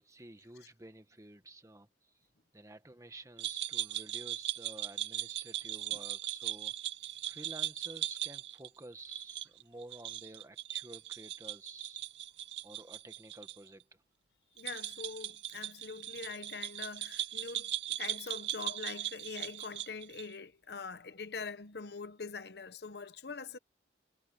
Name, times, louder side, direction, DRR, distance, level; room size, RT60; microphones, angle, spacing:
voice 1, 0.0-1.9 2.5-6.7 7.3-12.1 12.6-13.8, right 2 dB, 15° right, 1.4 m, -51 dB
sound 1, 3.4-13.6 13.8-13.9 14.6-20.3, right 13 dB, 75° right, 0.6 m, -39 dB
voice 2, 14.6-17.7 18.0-23.6, left 4 dB, 60° left, 0.9 m, -43 dB
head